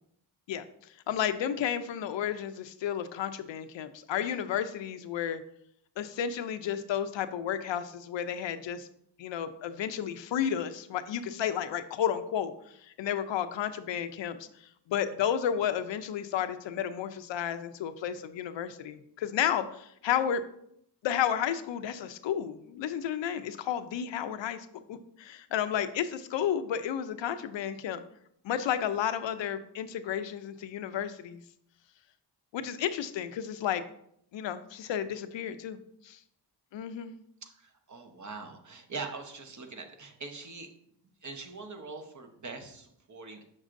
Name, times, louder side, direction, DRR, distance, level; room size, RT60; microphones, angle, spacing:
voice 1, 1.1-5.4 6.0-8.9 9.2-12.5 13.0-14.5 14.9-20.4 21.0-28.0 28.4-31.4 32.5-33.8 34.3-35.8 36.0-36.2 36.7-37.2, left 9 dB, 85° left, 10 dB, 0.6 m, -32 dB
voice 2, 37.4-40.7 41.2-43.5, right 4 dB, 40° right, 5 dB, 0.9 m, -42 dB
6.3 x 6.1 x 2.5 m, 0.71 s
cardioid pair, 90°, 43 cm